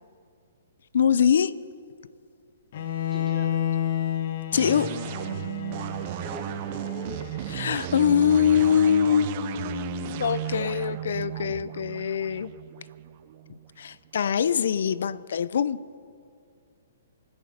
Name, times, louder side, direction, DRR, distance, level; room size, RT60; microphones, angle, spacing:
voice 1, 0.9-1.6 4.5-5.0 7.5-12.5 13.5-15.8, left 8 dB, 70° left, 17 dB, 0.5 m, -23 dB
Bowed string instrument, 2.7-8.8, left 10 dB, 55° left, 1.2 m, -32 dB
voice 2, 3.1-3.5 6.2-8.0 10.4-10.6, left 2 dB, 5° left, 2 dB, 1.8 m, -43 dB
sound 1, 4.5-14.0, right 12 dB, 40° right, 0.7 m, -35 dB
25.0 x 9.8 x 5.2 m, 2.2 s
hypercardioid pair, 145°, 0 cm